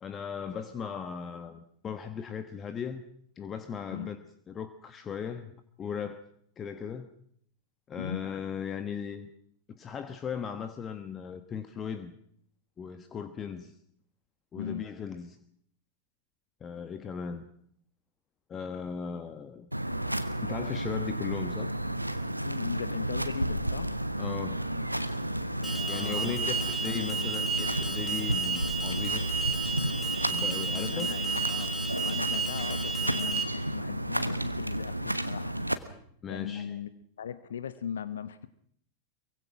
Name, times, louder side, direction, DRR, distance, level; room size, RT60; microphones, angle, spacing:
voice 1, 0.0-3.0 3.4-4.2 4.5-6.2 6.6-7.1 7.9-9.3 9.8-12.1 12.8-13.7 14.5-15.4 16.6-17.4 18.5-19.7 20.4-21.7 24.2-24.6 25.9-29.3 30.2-31.1 36.2-36.8, left 7 dB, 25° left, 10 dB, 1.3 m, -37 dB
voice 2, 14.5-14.9 22.4-23.9 25.6-27.5 30.7-36.0 36.3-36.9 37.2-38.5, left 8 dB, 65° left, 14 dB, 1.0 m, -39 dB
sound 1, 19.7-35.7, right 1 dB, 90° right, 1.2 m, -32 dB
Alarm, 25.6-33.4, right 4 dB, 5° left, 2.5 m, -33 dB
23.5 x 23.0 x 6.0 m, 0.65 s
figure-of-eight pair, 90°, 0 cm